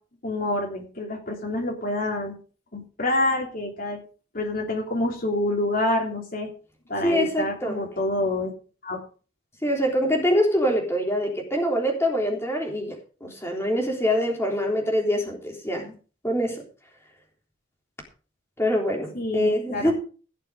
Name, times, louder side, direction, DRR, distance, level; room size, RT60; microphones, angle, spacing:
voice 1, 0.2-2.4 2.7-4.0 4.3-6.5 6.9-8.5 8.8-9.0 19.1-19.9, left 1 dB, 45° left, 0 dB, 3.4 m, -27 dB
voice 2, 7.0-7.9 9.6-12.9 13.2-15.9 16.2-16.6 18.6-19.9, equal, 15° left, 0 dB, 3.5 m, -24 dB
17.5 x 6.9 x 5.1 m, 0.38 s
head